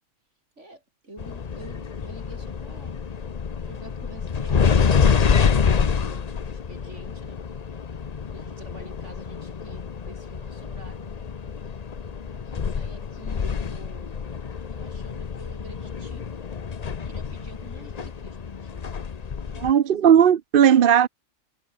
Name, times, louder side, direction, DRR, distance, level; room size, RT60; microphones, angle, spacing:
voice 1, 0.6-3.0 3.6-7.4 8.3-11.2 12.3-14.2 14.7-16.2 17.0-18.9 19.5-20.3, right 1 dB, 70° right, 7.6 m, -48 dB
sound 1, 1.2-19.7, left 6 dB, 35° left, 0.8 m, -27 dB
voice 2, 19.6-21.1, right 9 dB, 55° right, 0.8 m, -16 dB
omnidirectional pair, 1.3 m